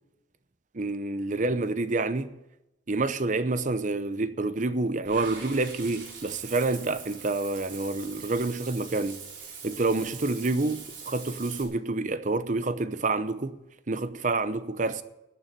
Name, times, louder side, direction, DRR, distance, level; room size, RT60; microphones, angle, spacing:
voice 1, 0.7-2.3 2.9-9.2 9.6-13.6 13.9-15.0, right 3 dB, 40° right, 0.7 m, -28 dB
Water / Bathtub (filling or washing), 5.0-11.6, right 5 dB, 75° right, 3.3 m, -43 dB
11.0 x 9.1 x 8.9 m
head